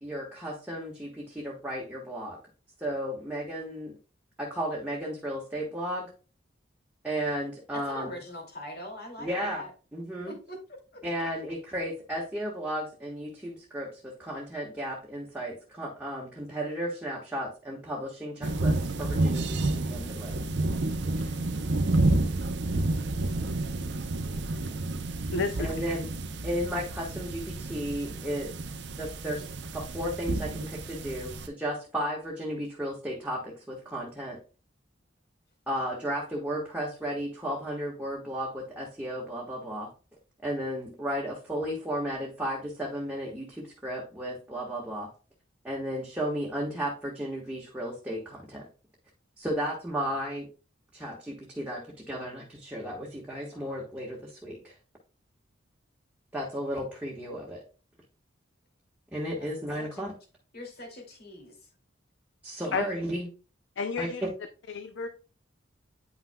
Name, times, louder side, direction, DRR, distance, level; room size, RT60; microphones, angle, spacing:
voice 1, 0.0-2.4 2.8-4.0 4.4-6.1 7.0-8.1 9.2-9.6 9.9-10.3 11.0-20.4 25.6-26.1 26.4-28.5 29.0-29.5 29.7-34.4 35.7-39.9 40.4-45.1 45.6-48.7 49.4-50.5 50.9-54.7 56.3-57.6 59.1-60.1 62.4-63.3 64.0-64.3, equal, 5° right, -4 dB, 1.4 m, -34 dB
voice 2, 7.7-9.7 10.3-11.0 21.2-21.4 22.0-22.2 59.4-59.5 59.8-60.0 60.5-61.6, left 1 dB, 55° left, 1 dB, 2.5 m, -42 dB
sound 1, 18.4-31.5, right 2 dB, 60° right, 0.7 m, -30 dB
voice 3, 25.3-25.7 62.7-62.9 63.8-64.2 64.7-65.1, left 4 dB, 75° left, 8 dB, 0.6 m, -30 dB
9.3 x 5.7 x 2.3 m, 0.35 s
head